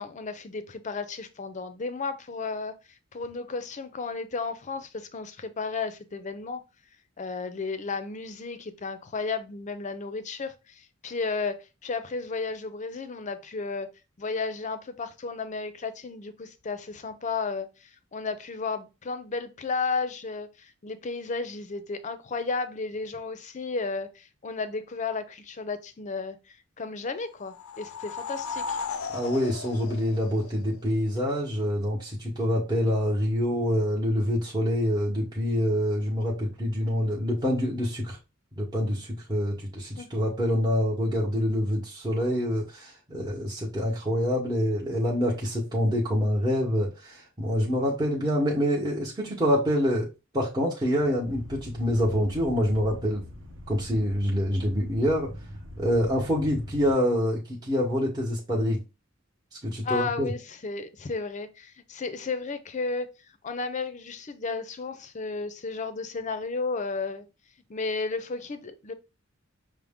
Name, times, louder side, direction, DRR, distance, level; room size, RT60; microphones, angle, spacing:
voice 1, 0.0-2.8 3.1-6.6 7.2-11.6 11.8-13.9 14.2-26.4 26.8-28.8 40.0-40.1 59.8-63.1 63.4-67.2 67.7-68.9, left 4 dB, 35° left, 0.5 m, -33 dB
sound 1, 27.4-31.0, left 5 dB, 85° left, 0.4 m, -36 dB
voice 2, 29.1-38.2 38.6-50.1 50.3-53.2 53.7-55.3 55.8-58.8 59.6-60.3, equal, 20° right, 0.9 m, -26 dB
sound 2, 51.2-56.9, equal, 70° right, 0.9 m, -42 dB
6.0 x 2.1 x 3.5 m
head